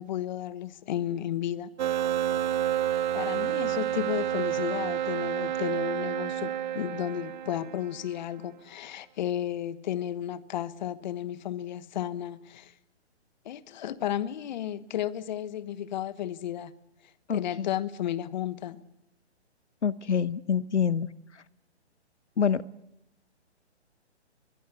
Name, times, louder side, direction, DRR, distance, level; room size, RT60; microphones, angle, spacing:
voice 1, 0.0-1.9 3.1-12.7 13.4-16.8 17.3-18.8, left 11 dB, 40° left, 1.2 m, -33 dB
sound 1, 1.8-8.2, right 11 dB, 40° right, 0.9 m, -29 dB
voice 2, 17.3-17.7 19.8-21.1 21.3-21.4 22.4-22.6, left 7 dB, 80° left, 1.0 m, -26 dB
23.5 x 21.5 x 8.4 m
hypercardioid pair, 140°, 34 cm